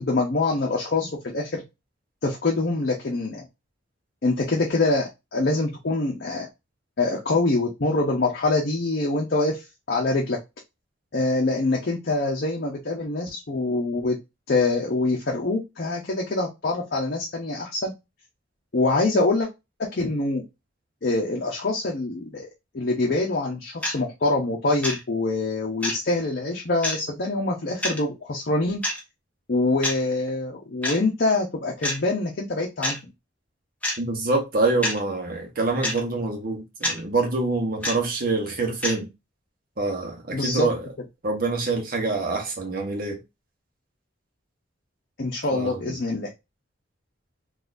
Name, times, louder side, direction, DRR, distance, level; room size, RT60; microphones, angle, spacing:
voice 1, 0.0-1.6 2.2-3.5 4.2-6.5 7.0-10.4 11.1-14.2 14.5-17.9 18.7-19.5 19.8-20.4 21.0-22.5 22.7-28.8 29.5-33.1 40.3-40.7 45.2-46.3, left 2 dB, 55° left, 0.7 m, -25 dB
sound 1, 23.8-24.0 24.8-25.0 25.8-26.0 26.8-27.0 27.8-28.0 28.8-29.0 29.8-30.0 30.8-31.0 31.8-32.0 32.8-33.0 33.8-34.0 34.8-35.0 35.8-36.0 36.8-37.0 37.8-38.0 38.8-39.0, left 1 dB, 10° left, 1.0 m, -26 dB
voice 2, 34.0-39.1 39.8-40.8 41.2-43.2 45.5-46.0, right 3 dB, 50° right, 0.8 m, -26 dB
4.0 x 2.5 x 2.5 m
head